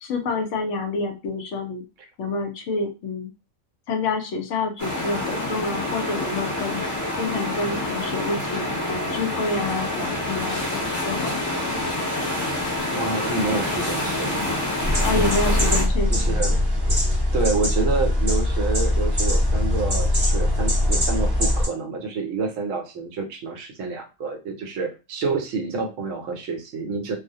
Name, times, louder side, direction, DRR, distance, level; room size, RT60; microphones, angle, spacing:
voice 1, 0.0-1.8 2.2-3.3 3.9-6.9 7.2-11.4 15.0-16.1, left 3 dB, 70° left, 4 dB, 0.8 m, -28 dB
sound 1, 4.8-15.8, left 1 dB, 20° left, 0.5 m, -27 dB
voice 2, 12.9-14.3 16.1-16.6 17.3-27.2, right 4 dB, 70° right, 4 dB, 0.9 m, -28 dB
sound 2, 14.8-21.7, left 1 dB, 20° right, 0.8 m, -21 dB
2.4 x 2.0 x 2.6 m, 0.29 s
omnidirectional pair, 1.5 m